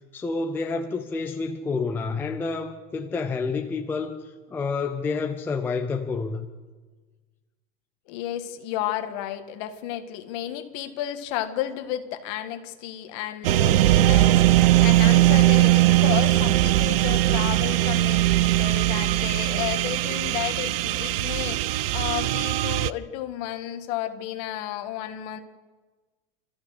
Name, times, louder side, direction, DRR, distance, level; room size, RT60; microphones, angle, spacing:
voice 1, 0.0-6.5, left 4 dB, 5° left, 5 dB, 0.5 m, -29 dB
voice 2, 8.1-25.4, left 12 dB, 45° left, 7 dB, 1.7 m, -32 dB
sound 1, 13.4-22.9, right 16 dB, 75° right, 0.7 m, -20 dB
28.5 x 14.5 x 6.5 m, 1.4 s
supercardioid pair, 170°, 29 cm